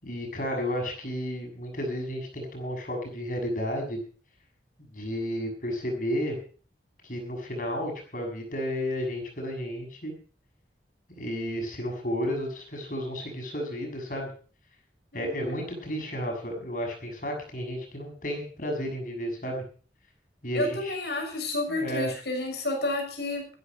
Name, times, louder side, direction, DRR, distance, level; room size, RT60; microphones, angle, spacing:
voice 1, 0.0-4.0 4.8-6.4 7.0-10.1 11.1-14.3 15.1-19.6 20.4-21.0 21.7-22.1, equal, 50° left, 2 dB, 6.7 m, -32 dB
voice 2, 15.1-15.6 20.5-23.5, left 2 dB, 65° left, 2 dB, 6.8 m, -31 dB
15.0 x 13.5 x 5.3 m, 0.41 s
head